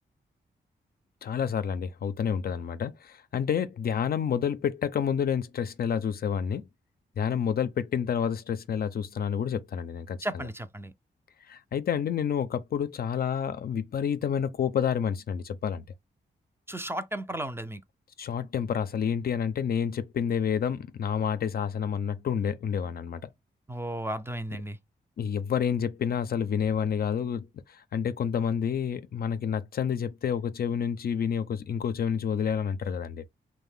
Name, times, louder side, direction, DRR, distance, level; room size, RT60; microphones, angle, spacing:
voice 1, 1.2-6.7 7.2-10.5 11.5-15.8 18.2-23.3 25.2-33.2, left 7 dB, 55° left, 0.4 m, -29 dB
voice 2, 10.2-10.9 16.7-17.8 23.7-24.8, right 1 dB, 10° right, 0.4 m, -34 dB
2.5 x 2.1 x 3.4 m
supercardioid pair, 50°, 19 cm